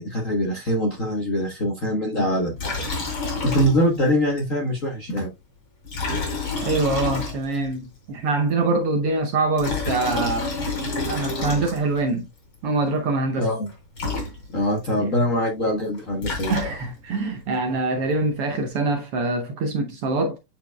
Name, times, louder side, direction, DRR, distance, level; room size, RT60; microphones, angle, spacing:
voice 1, 0.0-5.3 13.4-13.7 14.5-16.5, equal, 80° left, 0.7 m, -24 dB
Liquid, 2.6-4.1 4.4-4.5 5.8-7.8 9.4-12.0 13.7-13.8 14.0-14.8 15.9-17.1, left 3 dB, 40° left, 3.8 m, -28 dB
voice 2, 6.6-10.5 11.1-12.2 12.6-13.5 15.0-15.1 16.5-20.4, right 3 dB, 70° right, 1.4 m, -24 dB
9.9 x 4.5 x 2.2 m
omnidirectional pair, 3.5 m